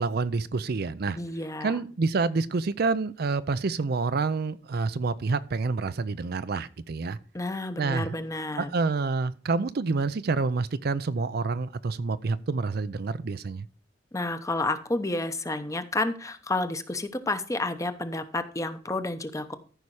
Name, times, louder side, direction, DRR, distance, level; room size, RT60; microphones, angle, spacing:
voice 1, 0.0-1.2 1.6-7.2 7.8-8.1 8.6-13.6, right 4 dB, 55° right, 0.5 m, -28 dB
voice 2, 1.1-1.8 7.3-8.7 14.1-19.5, left 2 dB, 15° left, 0.8 m, -30 dB
14.0 x 5.6 x 4.8 m
head